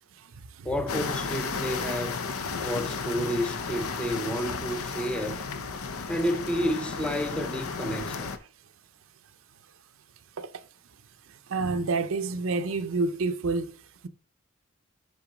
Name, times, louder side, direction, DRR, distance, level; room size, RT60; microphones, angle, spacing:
voice 1, 0.6-2.2 2.6-5.5 6.1-8.3, equal, 5° left, 0.5 m, -30 dB
sound 1, 0.9-8.4, left 5 dB, 75° left, 0.7 m, -33 dB
voice 2, 11.5-13.8, right 3 dB, 65° right, 0.5 m, -28 dB
6.9 x 4.0 x 4.9 m
head